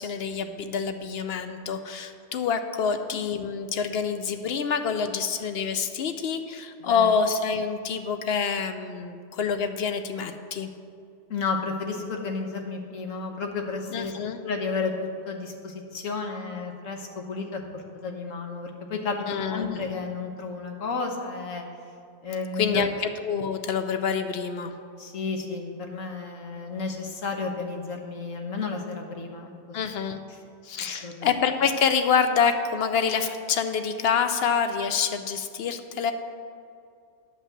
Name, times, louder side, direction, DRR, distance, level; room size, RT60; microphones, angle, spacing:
voice 1, 0.0-10.7 13.9-14.4 19.3-19.9 22.6-24.7 29.7-30.2 30.6-36.1, left 6 dB, 65° left, 8 dB, 0.7 m, -27 dB
voice 2, 6.8-7.1 11.3-14.2 14.4-19.2 19.5-21.6 22.2-22.8 25.0-29.8 30.3-30.4 30.8-31.3, left 4 dB, 85° left, 3 dB, 1.4 m, -32 dB
9.3 x 5.4 x 7.3 m, 2.4 s
omnidirectional pair, 1.3 m